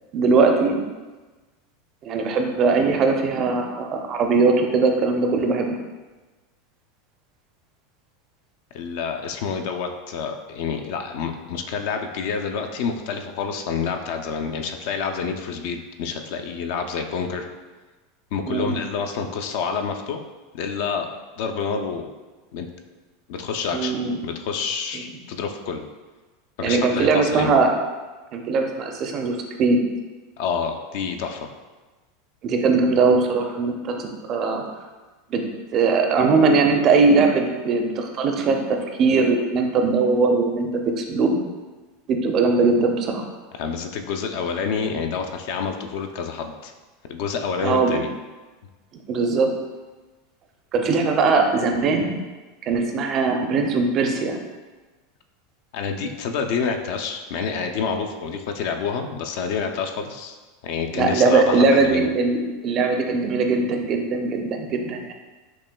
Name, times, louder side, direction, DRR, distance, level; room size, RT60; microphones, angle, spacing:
voice 1, 0.1-0.8 2.0-5.8 18.5-18.7 23.7-24.2 26.6-27.7 28.3-29.8 32.4-34.6 35.3-35.4 35.7-38.6 39.0-40.7 41.0-41.4 42.1-43.2 47.6-48.0 49.1-49.5 50.7-52.1 52.6-54.4 60.9-65.1, right 4 dB, 40° right, 4 dB, 0.5 m, -20 dB
voice 2, 8.7-17.5 18.3-20.2 20.5-21.1 21.4-22.1 22.5-22.7 23.3-23.9 24.2-25.9 26.6-27.5 30.4-31.5 43.6-46.7 47.1-48.1 55.7-60.4 60.6-62.1, left 6 dB, 65° left, 5 dB, 0.4 m, -28 dB
5.9 x 2.2 x 2.2 m, 1.3 s
supercardioid pair, 115°, 0 cm